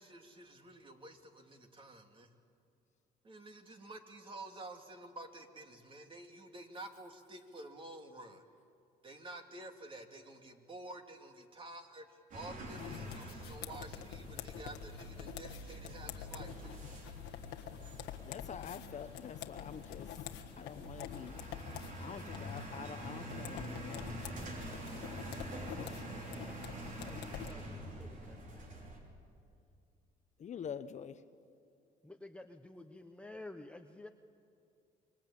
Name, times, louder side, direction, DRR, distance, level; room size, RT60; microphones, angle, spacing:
voice 1, 0.0-2.3 3.2-8.4 9.0-16.8, right 2 dB, 30° right, 5 dB, 2.6 m, -50 dB
sound 1, 12.3-29.0, right 1 dB, 50° right, 5.5 m, -46 dB
sound 2, 12.7-27.5, left 10 dB, 90° left, 1.5 m, -47 dB
voice 2, 18.2-20.2 20.6-21.4 22.0-24.2 30.4-31.2, left 8 dB, 45° left, 11 dB, 1.0 m, -46 dB
voice 3, 27.0-28.9 32.0-34.1, left 2 dB, 5° left, 5 dB, 1.0 m, -51 dB
26.0 x 22.5 x 8.7 m, 2.6 s
cardioid pair, 110°, 17 cm